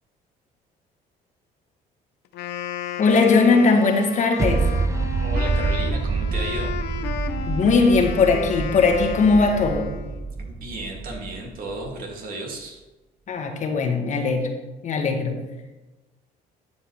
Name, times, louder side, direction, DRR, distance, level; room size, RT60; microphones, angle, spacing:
Wind instrument woodwind instrument, 2.3-10.3, left 9 dB, 80° left, 0.9 m, -33 dB
voice 1, 3.0-4.6 7.5-9.9 13.3-14.5 14.8-15.3, left 4 dB, 45° left, 3 dB, 1.5 m, -19 dB
sound 1, 4.4-11.9, right 4 dB, 20° right, 0.3 m, -27 dB
voice 2, 5.2-6.7 10.4-12.8, right 2 dB, 55° right, 0 dB, 2.4 m, -34 dB
12.0 x 7.2 x 3.3 m, 1.1 s
cardioid pair, 110°, 17 cm